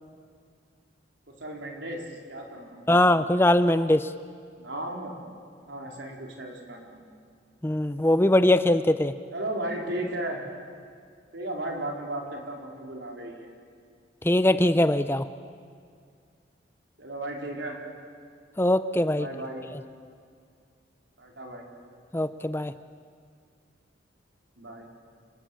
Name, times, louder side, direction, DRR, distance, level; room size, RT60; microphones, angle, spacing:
voice 1, 1.4-3.0 4.6-5.2 5.6-7.0 9.3-10.4 11.3-13.5 17.0-17.8 19.2-19.7 21.2-21.6 24.6-24.9, right 1 dB, 85° right, 1 dB, 4.4 m, -35 dB
voice 2, 2.9-4.1 7.6-9.2 14.2-15.3 18.6-19.3 22.1-22.7, left 1 dB, 10° left, 12 dB, 0.6 m, -21 dB
28.5 x 20.5 x 8.6 m, 2.2 s
head